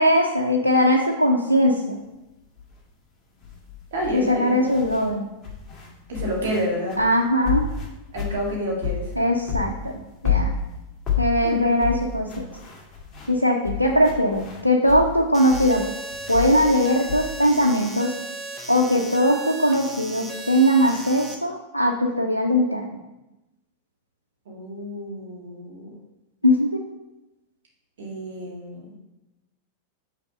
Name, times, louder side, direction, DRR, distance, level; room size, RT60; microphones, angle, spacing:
voice 1, 0.0-2.0 4.1-5.3 7.0-7.7 9.2-9.9 10.2-10.5 11.2-12.4 13.3-15.8 16.3-18.1 18.7-22.8 26.4-26.8, equal, 90° left, 0 dB, 0.5 m, -20 dB
sound 1, 2.6-2.8 3.4-5.1 5.4-9.2 9.5-15.1 15.5-17.2, left 7 dB, 20° left, 1.7 m, -29 dB
voice 2, 3.9-4.6 6.1-7.0 8.1-9.0 11.4-11.6 24.5-25.9 28.0-28.9, equal, 60° right, -2 dB, 2.2 m, -29 dB
sound 2, 15.3-21.3, right 2 dB, 15° right, 0.9 m, -36 dB
6.1 x 4.2 x 5.3 m, 0.98 s
figure-of-eight pair, 90°, 0 cm